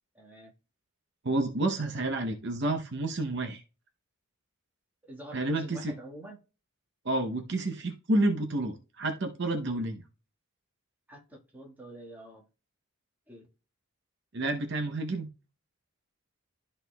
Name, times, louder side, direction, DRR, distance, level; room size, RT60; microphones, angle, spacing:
voice 1, 0.1-0.5 5.0-6.4 11.1-12.5 13.3-13.5, right 1 dB, 10° right, 1.5 m, -47 dB
voice 2, 1.2-3.6 5.3-5.9 7.0-10.0 14.3-15.3, right 2 dB, 50° right, 0.8 m, -29 dB
13.0 x 4.3 x 2.2 m
head